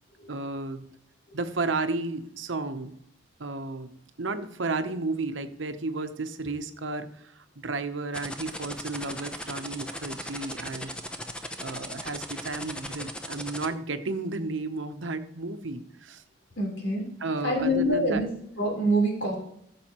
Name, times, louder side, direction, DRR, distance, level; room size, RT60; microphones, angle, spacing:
voice 1, 0.3-0.9 1.3-2.9 3.4-3.9 4.2-11.0 11.6-16.2 17.2-18.2, right 3 dB, 85° right, 9 dB, 0.8 m, -33 dB
sound 1, 8.1-13.7, equal, 5° left, 0.6 m, -37 dB
voice 2, 16.6-17.1 17.4-18.3 18.6-19.5, equal, 85° left, -1 dB, 3.7 m, -26 dB
14.5 x 7.0 x 3.0 m, 0.71 s
head